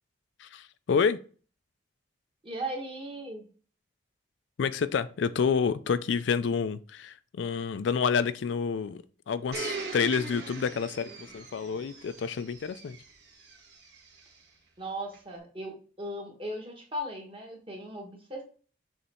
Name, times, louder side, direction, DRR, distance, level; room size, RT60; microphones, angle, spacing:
voice 1, 0.4-1.2 4.6-13.0, left 6 dB, 75° left, 0.4 m, -29 dB
voice 2, 2.4-3.5 14.8-18.4, right 1 dB, 30° right, 1.3 m, -37 dB
Domestic sounds home sounds, 9.5-14.4 15.1-15.2, right 4 dB, 60° right, 1.5 m, -41 dB
6.8 x 3.3 x 4.3 m
head